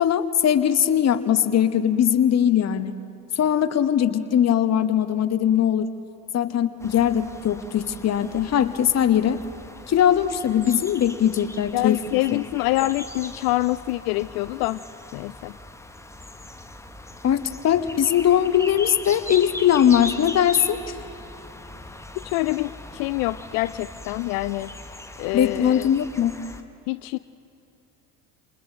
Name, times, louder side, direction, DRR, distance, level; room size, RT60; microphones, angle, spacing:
voice 1, 0.0-2.9 3.4-5.9 6.3-9.4 9.9-12.0 12.3-12.4 17.2-20.8 25.3-26.4, left 9 dB, 30° left, 12 dB, 1.0 m, -20 dB
sound 1, 6.8-26.6, left 2 dB, 5° left, 1.1 m, -40 dB
voice 2, 11.7-14.8 15.1-15.5 22.1-24.7 25.2-25.9 26.9-27.2, left 18 dB, 50° left, 16 dB, 0.5 m, -26 dB
29.0 x 28.0 x 3.9 m, 2.9 s
figure-of-eight pair, 55°, 49 cm